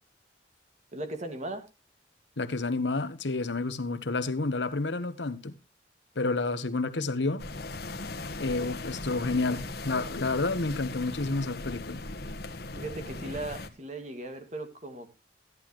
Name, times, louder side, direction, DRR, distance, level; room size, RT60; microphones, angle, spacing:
voice 1, 0.9-1.6 12.8-15.2, right 2 dB, 40° right, 2.1 m, -38 dB
voice 2, 2.4-5.5 6.1-7.5 8.4-12.0, left 3 dB, 80° left, 1.1 m, -30 dB
sound 1, 7.4-13.7, left 2 dB, 60° left, 1.3 m, -38 dB
13.5 x 11.0 x 3.1 m
head